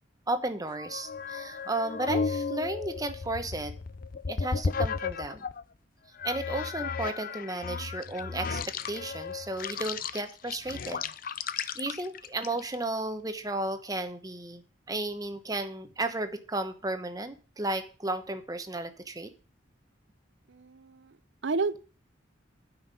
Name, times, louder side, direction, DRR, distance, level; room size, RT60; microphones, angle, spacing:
voice 1, 0.3-3.7 4.3-5.4 6.2-11.0 11.5-14.6 14.9-19.3, right 2 dB, 20° right, 1.1 m, -34 dB
sound 1, 0.7-5.6 6.2-12.8, left 5 dB, 45° left, 0.5 m, -34 dB
voice 2, 20.5-21.2 21.4-21.8, right 4 dB, 70° right, 0.6 m, -31 dB
9.5 x 5.8 x 8.3 m
head